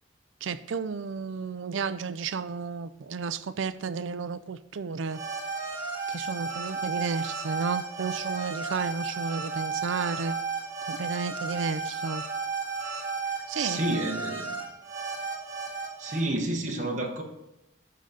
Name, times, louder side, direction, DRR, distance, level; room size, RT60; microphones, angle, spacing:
voice 1, 0.4-5.2 6.1-10.4 10.9-12.2 13.5-14.4, right 5 dB, 75° right, 14 dB, 0.5 m, -32 dB
sound 1, 5.1-16.2, right 4 dB, 20° right, 2.3 m, -34 dB
voice 2, 13.5-14.6 16.0-17.2, right 1 dB, 40° right, 0 dB, 1.0 m, -30 dB
11.5 x 3.9 x 5.6 m, 0.89 s
head